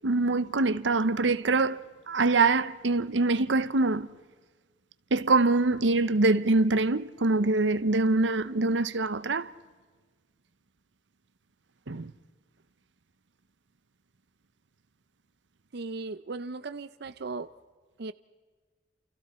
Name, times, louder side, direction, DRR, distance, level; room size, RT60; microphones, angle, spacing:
voice 1, 0.0-1.8 2.1-4.1 5.1-9.5 11.9-12.1, right 3 dB, 90° right, 0.9 m, -24 dB
voice 2, 15.7-17.5 18.0-18.1, right 3 dB, 65° right, 0.6 m, -37 dB
30.0 x 29.0 x 4.4 m
head